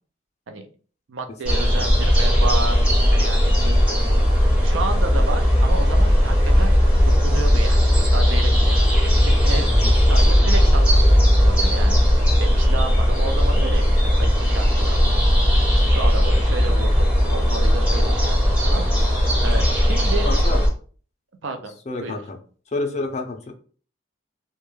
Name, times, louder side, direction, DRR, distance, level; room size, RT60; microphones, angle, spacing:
voice 1, 1.1-4.2 4.6-6.7 7.1-7.8 8.1-8.8 9.2-9.8 10.1-12.0 12.4-15.2 15.7-18.3 18.6-18.8 19.4-20.3 21.4-21.7 22.0-22.2, right 3 dB, 75° right, 6 dB, 0.5 m, -31 dB
sound 1, 1.4-20.7, equal, 5° right, 0.7 m, -17 dB
voice 2, 20.2-20.6 21.9-22.4 22.7-23.5, left 3 dB, 35° left, 4 dB, 0.4 m, -28 dB
2.2 x 2.1 x 3.1 m, 0.42 s
head